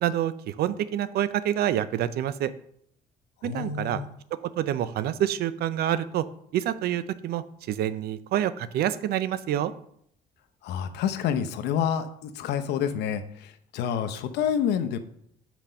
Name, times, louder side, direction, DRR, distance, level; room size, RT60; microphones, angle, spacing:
voice 1, 0.0-2.5 3.4-4.0 4.6-6.2 6.5-9.7, right 11 dB, 70° right, 15 dB, 0.5 m, -27 dB
voice 2, 3.4-4.1 10.6-15.0, left 8 dB, 80° left, 8 dB, 0.8 m, -28 dB
6.0 x 5.1 x 5.6 m, 0.67 s
cardioid pair, 110°, 17 cm